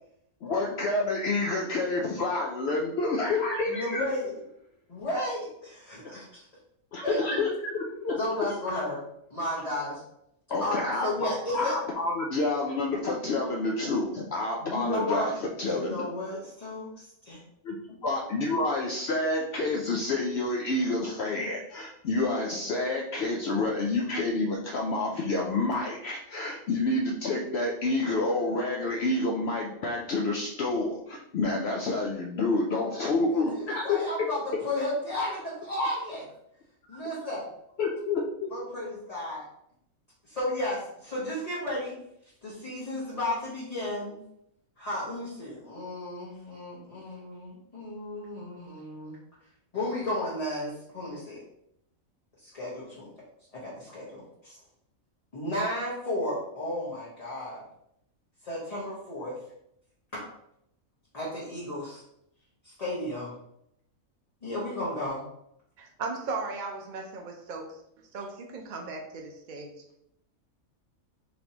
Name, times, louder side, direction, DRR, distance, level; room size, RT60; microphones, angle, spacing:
voice 1, 0.4-4.0 6.9-8.4 10.5-15.3 15.6-16.0 17.6-17.8 18.0-34.0 37.8-38.5, left 2 dB, 65° left, -1 dB, 0.7 m, -28 dB
voice 2, 3.7-4.3 4.9-6.4 7.0-7.4 8.2-9.0 9.3-10.0 10.6-11.8 14.6-15.3 15.6-17.4 33.3-36.2 36.9-37.4 38.5-39.4 40.3-42.0 42.4-44.2 44.8-49.1 49.7-51.4 52.4-53.1 53.5-54.6 55.3-57.6 58.4-59.4 60.1-60.3 61.1-62.0 62.6-63.3 64.4-65.2, left 1 dB, 30° left, -7 dB, 1.0 m, -33 dB
voice 3, 65.8-67.8 68.1-69.7, right 3 dB, 75° right, 1 dB, 0.4 m, -36 dB
4.1 x 3.3 x 2.8 m, 0.75 s
omnidirectional pair, 1.5 m